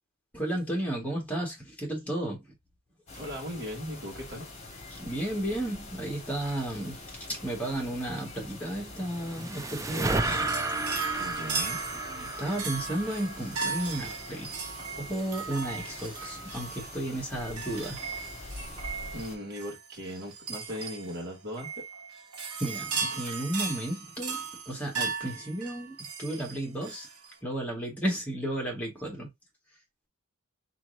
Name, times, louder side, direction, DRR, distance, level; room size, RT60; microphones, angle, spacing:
voice 1, 0.3-2.5 4.9-10.5 10.7-11.1 12.1-14.6 15.0-18.0 22.6-27.1 27.4-29.3, right 1 dB, 5° left, 2.1 m, -33 dB
sound 1, 3.1-19.4, left 2 dB, 30° left, 1.9 m, -45 dB
voice 2, 3.1-4.5 11.2-11.8 19.1-21.8, equal, 45° right, 2.9 m, -38 dB
sound 2, 8.8-14.2, right 2 dB, 15° right, 0.4 m, -33 dB
sound 3, 9.8-27.3, right 5 dB, 90° right, 1.1 m, -37 dB
4.4 x 4.1 x 2.7 m
head